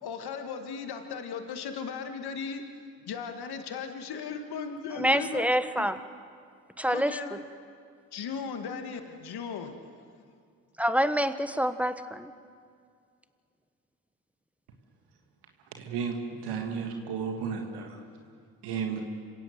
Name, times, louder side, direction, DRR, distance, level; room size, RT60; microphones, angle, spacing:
voice 1, 0.0-2.6 3.1-5.4 5.8-5.9 6.9-7.4 8.1-9.7, left 6 dB, 70° left, 6 dB, 2.0 m, -37 dB
voice 2, 4.9-6.0 6.8-7.4 10.8-12.3, equal, 5° right, 11 dB, 1.3 m, -27 dB
voice 3, 15.8-16.2 16.4-18.0 18.6-19.0, right 6 dB, 85° right, 3 dB, 1.9 m, -33 dB
26.5 x 17.0 x 7.9 m, 2.2 s
supercardioid pair, 50°, 39 cm